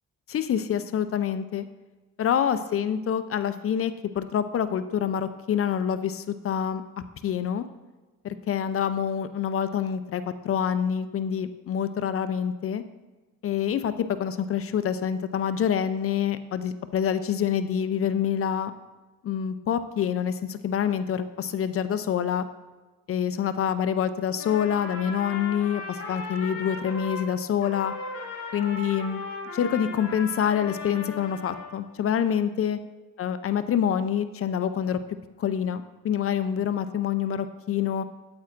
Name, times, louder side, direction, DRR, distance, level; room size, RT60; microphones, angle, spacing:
voice 1, 0.3-1.7 2.2-6.8 7.2-7.6 8.2-12.8 13.4-13.9 14.2-18.7 19.2-22.5 23.1-27.9 28.5-29.2 29.5-32.8 33.2-35.0 35.4-38.0, left 8 dB, 50° left, 12 dB, 0.5 m, -26 dB
Trumpet, 24.3-27.3 27.6-31.7, left 3 dB, 65° left, 2.7 m, -37 dB
8.7 x 8.4 x 2.5 m, 1.2 s
cardioid pair, 90°, 30 cm